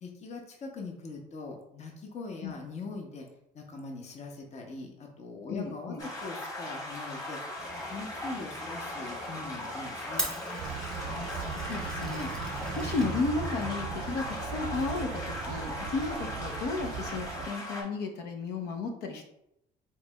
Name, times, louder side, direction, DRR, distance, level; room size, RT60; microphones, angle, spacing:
voice 1, 0.0-3.3 3.5-7.4 7.9-10.3, left 3 dB, 40° left, 2 dB, 0.8 m, -42 dB
voice 2, 5.5-6.1 11.0-12.3 12.8-19.2, left 3 dB, 80° left, 3 dB, 0.9 m, -34 dB
sound 1, 6.0-17.8, left 1 dB, 20° left, 1.5 m, -39 dB
Glass, 7.6-13.8, right 1 dB, 5° left, 0.8 m, -41 dB
sound 2, 10.6-17.5, right 7 dB, 65° right, 0.4 m, -38 dB
4.6 x 4.2 x 2.3 m, 0.79 s
cardioid pair, 110°, 17 cm